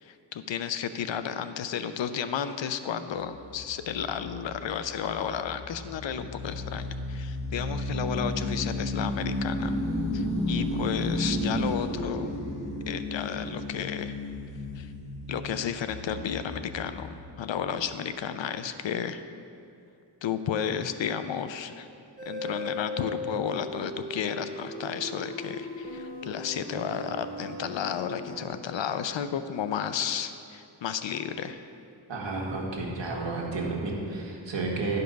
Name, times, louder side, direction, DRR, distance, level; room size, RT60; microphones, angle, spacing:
voice 1, 0.0-9.7 10.1-12.4 12.9-14.1 14.8-14.9 15.3-19.2 20.2-21.9 22.3-31.6, left 8 dB, 80° left, 10 dB, 0.6 m, -32 dB
sound 1, 3.2-17.3, left 1 dB, 15° left, 1.6 m, -33 dB
sound 2, 22.2-28.5, left 2 dB, 20° right, 1.0 m, -38 dB
voice 2, 32.1-35.0, right 3 dB, 75° right, -2 dB, 1.6 m, -31 dB
11.5 x 5.4 x 5.3 m, 2.6 s
wide cardioid pair, 130°, 44 cm